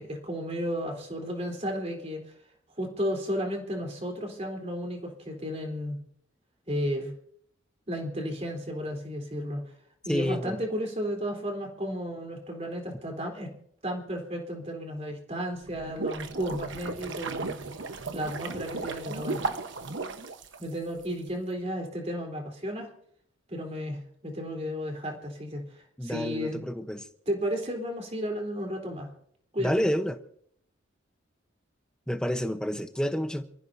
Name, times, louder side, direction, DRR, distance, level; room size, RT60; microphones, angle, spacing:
voice 1, 0.0-2.2 2.8-6.0 6.7-7.1 7.9-9.6 10.0-13.5 13.8-17.6 18.1-19.4 20.6-22.9 23.5-26.6 27.3-29.1 29.5-29.9, equal, 30° right, 3.7 m, -33 dB
voice 2, 10.1-10.6 26.0-27.1 29.6-30.2 32.1-33.4, equal, 5° left, 0.9 m, -29 dB
sound 1, 15.6-21.0, right 3 dB, 65° right, 1.1 m, -35 dB
27.5 x 15.0 x 2.7 m
head